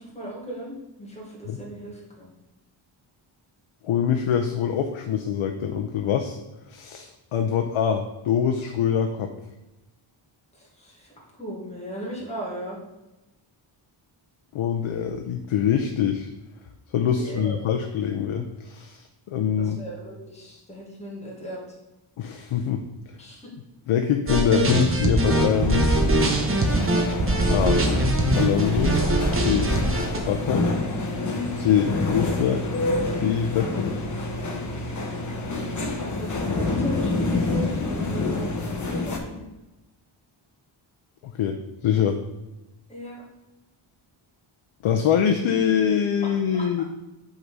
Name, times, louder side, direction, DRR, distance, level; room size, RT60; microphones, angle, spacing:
voice 1, 0.0-2.3 10.5-12.8 17.0-17.6 19.6-21.6 23.2-23.5 36.0-39.4 42.9-43.2 46.2-46.4 46.8-46.9, right 1 dB, 15° left, -4 dB, 1.9 m, -37 dB
voice 2, 3.8-6.4 6.7-9.3 14.5-16.3 16.9-19.8 22.2-22.8 23.9-26.1 27.5-27.8 28.3-29.0 29.4-29.7 30.3-30.7 31.5-32.7 33.2-34.0 41.2-42.2 44.8-46.8, left 8 dB, 85° left, 5 dB, 0.7 m, -24 dB
sound 1, 24.3-30.2, right 1 dB, 25° right, 0.8 m, -22 dB
sound 2, 25.2-39.2, left 2 dB, 35° left, 1.0 m, -28 dB
8.0 x 3.9 x 4.7 m, 1.0 s
wide cardioid pair, 165°, 48 cm